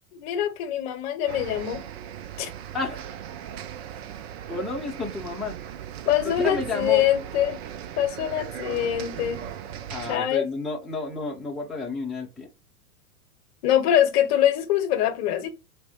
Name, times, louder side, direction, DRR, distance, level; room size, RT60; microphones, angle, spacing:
voice 1, 0.1-1.8 2.4-2.5 6.1-7.6 8.0-9.4 10.1-10.5 13.6-15.5, left 11 dB, 45° left, 0.9 m, -23 dB
sound 1, 1.3-10.2, right 10 dB, 45° right, 0.5 m, -38 dB
voice 2, 2.7-3.1 4.5-5.6 6.2-7.0 9.9-12.5, left 3 dB, ahead, 0.7 m, -31 dB
4.4 x 2.1 x 4.3 m
figure-of-eight pair, 100°, 45 cm